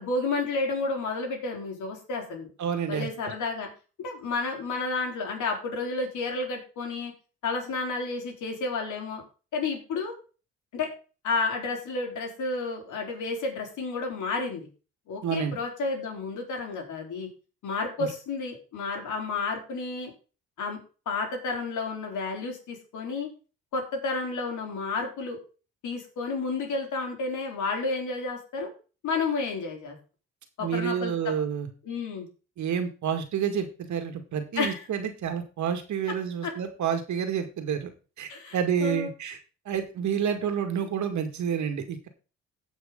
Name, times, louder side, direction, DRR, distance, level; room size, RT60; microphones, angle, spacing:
voice 1, 0.0-2.5 2.9-3.7 4.0-7.1 7.4-9.2 9.5-10.1 10.7-10.9 11.2-14.7 15.1-17.3 17.6-20.1 20.6-20.8 21.1-23.3 23.7-25.4 25.8-28.7 29.0-30.0 30.6-31.3 31.8-32.3 34.6-34.8 38.3-39.1, left 3 dB, 75° left, 2 dB, 3.8 m, -31 dB
voice 2, 2.6-3.1 15.2-15.6 18.0-18.1 30.6-31.7 32.6-37.9 38.2-39.4 39.7-42.1, right 8 dB, 70° right, 7 dB, 2.1 m, -29 dB
16.5 x 5.7 x 3.9 m, 0.34 s
cardioid pair, 90°, 30 cm